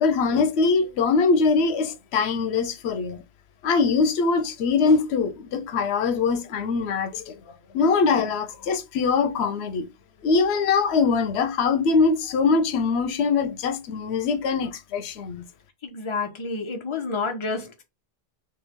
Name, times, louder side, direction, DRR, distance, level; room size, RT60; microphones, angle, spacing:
voice 1, 0.0-3.2 3.6-7.4 7.7-9.9 10.2-15.5, left 4 dB, 90° left, 0.9 m, -22 dB
voice 2, 15.8-17.8, left 4 dB, 30° left, 0.7 m, -29 dB
3.1 x 3.0 x 3.5 m
omnidirectional pair, 1.1 m